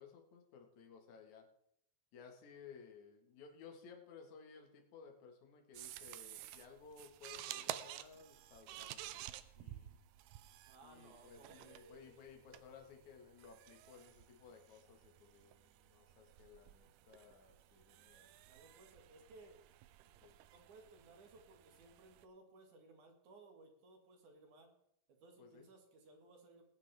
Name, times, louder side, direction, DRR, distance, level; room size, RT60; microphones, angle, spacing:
voice 1, 0.0-1.5 2.1-9.3 9.6-10.0 10.8-18.4 20.2-20.4 25.4-25.7, left 6 dB, 55° left, 3 dB, 2.7 m, -58 dB
sound 1, 5.7-22.3, right 13 dB, 85° right, 1.9 m, -52 dB
voice 2, 10.6-12.1 18.4-19.6 20.5-24.7 25.1-26.6, right 2 dB, 55° right, 3 dB, 3.0 m, -61 dB
20.0 x 9.2 x 3.5 m, 0.75 s
omnidirectional pair, 4.5 m